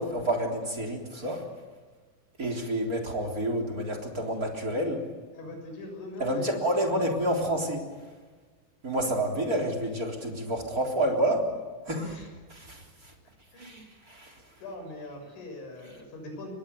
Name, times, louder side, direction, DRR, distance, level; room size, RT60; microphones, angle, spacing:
voice 1, 0.0-1.4 2.4-5.0 6.2-7.8 8.8-11.5 11.8-12.1 12.5-13.1 13.6-14.4, right 1 dB, 20° right, 4 dB, 3.4 m, -29 dB
voice 2, 5.3-6.6 9.0-9.1 12.0-12.3 13.5-13.8 14.6-16.5, left 2 dB, 70° left, 3 dB, 9.0 m, -41 dB
30.0 x 23.5 x 7.0 m, 1.4 s
omnidirectional pair, 5.5 m